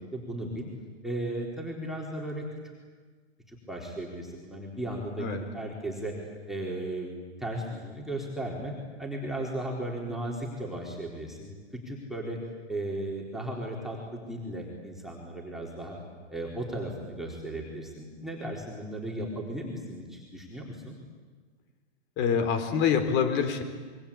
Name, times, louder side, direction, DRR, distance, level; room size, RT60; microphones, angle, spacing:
voice 1, 0.1-0.7 1.0-2.5 3.5-6.2 6.5-7.1 7.4-8.7 9.0-11.5 11.8-12.4 12.7-16.0 16.3-21.0, right 1 dB, ahead, -2 dB, 4.0 m, -36 dB
voice 2, 22.2-23.6, left 7 dB, 30° left, 8 dB, 3.9 m, -25 dB
27.0 x 23.5 x 8.6 m, 1.5 s
hypercardioid pair, 135°, 35 cm